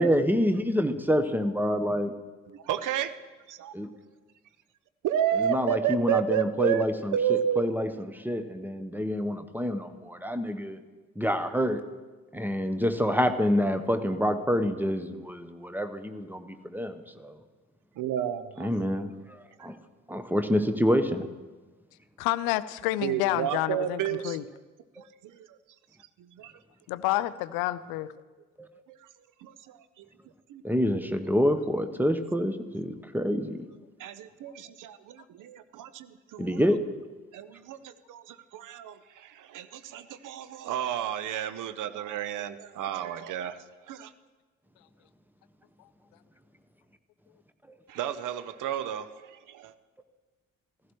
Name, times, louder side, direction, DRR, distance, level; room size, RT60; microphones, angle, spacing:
voice 1, 0.0-2.1 3.7-3.9 5.4-10.8 11.2-11.8 12.3-17.3 18.6-19.8 20.1-21.3 28.6-28.7 30.6-33.6 36.4-36.8, equal, 5° right, 9 dB, 0.9 m, -27 dB
voice 2, 2.5-3.1 3.5-3.7 5.0-6.9 7.1-7.6 18.0-18.8 19.6-19.7 23.0-24.4 25.2-25.6 26.2-26.5 29.4-30.1 30.5-30.6 33.2-33.3 34.0-36.7 37.3-43.6 43.9-44.1 47.9-49.7, right 10 dB, 55° right, 13 dB, 0.8 m, -31 dB
voice 3, 22.2-24.4 26.9-28.1, left 16 dB, 65° left, 16 dB, 0.6 m, -29 dB
15.5 x 12.5 x 3.1 m, 1.3 s
figure-of-eight pair, 40°, 38 cm